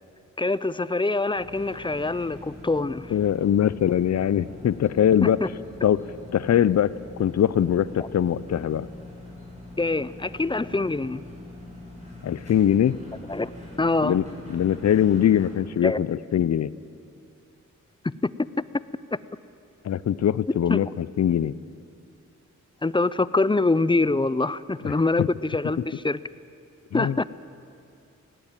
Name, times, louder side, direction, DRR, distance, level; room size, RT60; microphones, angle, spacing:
voice 1, 0.4-3.1 5.2-5.5 9.8-11.2 13.3-13.5 13.8-14.2 15.8-16.0 20.7-20.8 22.8-26.2 26.9-27.2, left 3 dB, 15° left, 17 dB, 0.5 m, -24 dB
sound 1, 1.3-15.5, left 2 dB, 25° right, 7.2 m, -43 dB
voice 2, 3.1-5.4 5.8-6.0 6.3-6.9 7.2-8.9 12.2-13.0 14.0-16.7 19.8-21.5 24.8-24.9 25.2-25.3 25.8-25.9 26.9-27.2, left 10 dB, 60° left, 19 dB, 0.6 m, -22 dB
18.5 x 17.5 x 9.0 m, 2.5 s
wide cardioid pair, 85°, 30 cm